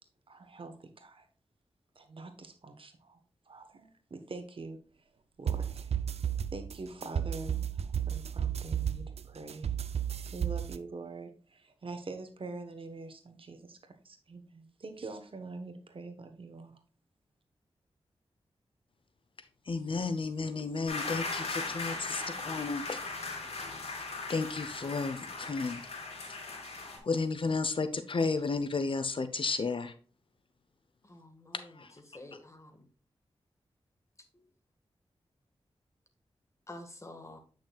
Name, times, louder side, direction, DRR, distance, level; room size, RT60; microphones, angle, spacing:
voice 1, 0.3-1.3 1.9-3.2 3.5-6.0 6.5-9.7 10.3-16.8, right 3 dB, 60° right, 7 dB, 1.2 m, -45 dB
sound 1, 5.5-10.8, right 8 dB, 80° right, 0.5 m, -33 dB
voice 2, 19.7-23.0 24.3-25.8 27.0-29.9 31.8-31.9, left 4 dB, 55° left, 10 dB, 0.8 m, -32 dB
sound 2, 20.9-27.0, left 3 dB, 80° left, 2.9 m, -38 dB
voice 3, 31.0-32.9 34.3-34.4 36.7-37.4, left 1 dB, 30° left, 5 dB, 1.8 m, -49 dB
8.8 x 6.0 x 2.4 m, 0.40 s
cardioid pair, 70°, 11 cm